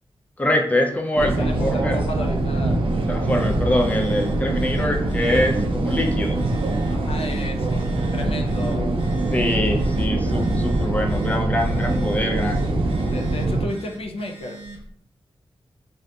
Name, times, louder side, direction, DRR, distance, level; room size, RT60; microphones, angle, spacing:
voice 1, 0.4-2.0 3.1-6.4 8.8-8.9 9.3-12.6, left 1 dB, 15° left, 2 dB, 0.4 m, -24 dB
sound 1, 1.2-13.7, right 2 dB, 65° right, 0.4 m, -23 dB
voice 2, 1.4-2.8 6.9-7.8 8.1-8.8 9.8-10.2 11.7-11.8 13.1-14.6, left 1 dB, 80° left, 2 dB, 0.4 m, -33 dB
Telephone, 3.2-14.9, right 3 dB, 80° right, 0.7 m, -41 dB
2.7 x 2.5 x 2.2 m, 0.64 s
wide cardioid pair, 140°, 10 cm